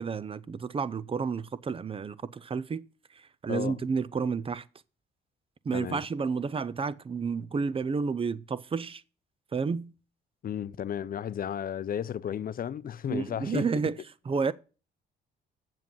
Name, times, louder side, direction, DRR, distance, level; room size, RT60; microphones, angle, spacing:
voice 1, 0.0-2.9 3.4-4.6 5.7-9.0 9.5-9.9 13.1-14.0 14.3-14.5, right 5 dB, 30° right, 0.6 m, -30 dB
voice 2, 3.5-3.8 5.7-6.0 10.4-13.7, left 9 dB, 45° left, 0.6 m, -33 dB
7.5 x 7.4 x 5.4 m
cardioid pair, 90°, 20 cm